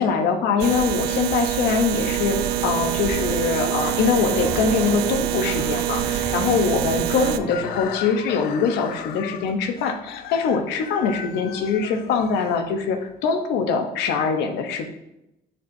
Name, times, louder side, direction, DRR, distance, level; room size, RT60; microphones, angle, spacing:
voice 1, 0.0-14.9, left 5 dB, 90° left, 5 dB, 0.8 m, -23 dB
sound 1, 0.6-7.4, right 13 dB, 75° right, 0.4 m, -25 dB
sound 2, 2.0-7.8, right 1 dB, 15° right, 0.7 m, -34 dB
Chicken rooster, 7.1-13.1, left 10 dB, 60° left, 0.4 m, -37 dB
10.0 x 4.3 x 2.7 m, 0.88 s
cardioid pair, 110°, 17 cm